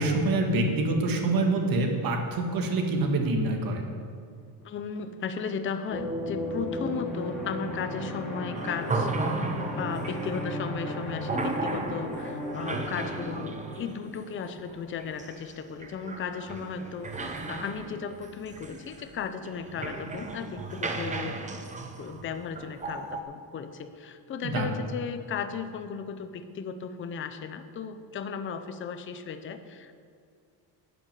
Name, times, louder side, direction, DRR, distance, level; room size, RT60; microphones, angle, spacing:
voice 1, 0.0-3.8 24.4-24.8, right 2 dB, 50° right, 2 dB, 1.9 m, -26 dB
voice 2, 4.6-21.4 22.0-30.0, left 6 dB, 25° left, 8 dB, 0.6 m, -36 dB
sound 1, 5.9-13.7, equal, ahead, 2.7 m, -35 dB
sound 2, 8.6-23.2, right 3 dB, 15° right, 0.8 m, -35 dB
12.5 x 6.4 x 9.0 m, 2.3 s
cardioid pair, 160°, 46 cm